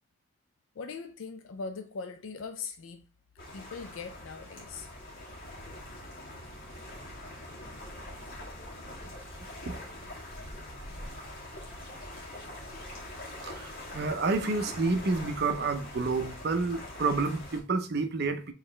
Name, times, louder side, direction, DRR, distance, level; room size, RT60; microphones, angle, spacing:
voice 1, 0.8-3.0 3.5-4.9, left 4 dB, 80° left, 0.5 m, -40 dB
sound 1, 3.4-17.6, left 1 dB, 45° left, 1.8 m, -43 dB
voice 2, 13.4-18.5, right 3 dB, 55° right, 0.6 m, -29 dB
4.8 x 3.2 x 3.2 m
head